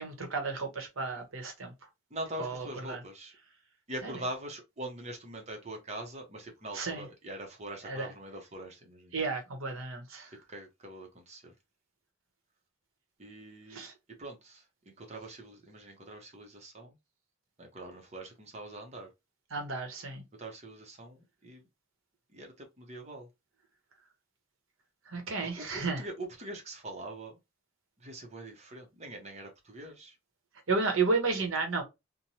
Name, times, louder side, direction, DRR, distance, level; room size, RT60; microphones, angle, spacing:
voice 1, 0.0-1.7 2.4-3.0 4.0-4.1 6.7-7.1 7.8-8.1 9.1-10.3 13.7-13.9 19.5-20.2 25.1-26.0 30.7-31.8, right 4 dB, 85° right, 1.0 m, -32 dB
voice 2, 2.1-3.4 3.9-9.1 10.3-11.5 13.2-13.8 14.2-16.9 17.6-19.1 20.4-21.7 22.3-23.3 25.4-27.4 28.0-30.2, right 1 dB, 35° right, 0.8 m, -43 dB
3.1 x 2.2 x 2.7 m
head